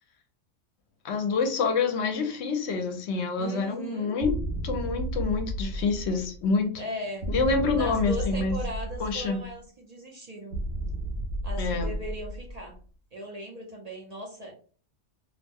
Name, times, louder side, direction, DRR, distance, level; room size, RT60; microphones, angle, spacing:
voice 1, 1.0-4.3 4.6-6.7 7.3-8.6 9.0-9.4 11.6-11.9, left 4 dB, 65° left, 6 dB, 0.9 m, -27 dB
voice 2, 3.4-4.2 6.8-7.3 7.7-10.6 11.4-12.8 13.1-14.5, equal, 40° right, -1 dB, 0.6 m, -38 dB
sound 1, 4.2-6.5 7.2-9.5 10.5-12.8, right 1 dB, 70° right, 0.9 m, -33 dB
2.6 x 2.1 x 3.4 m, 0.41 s
omnidirectional pair, 1.3 m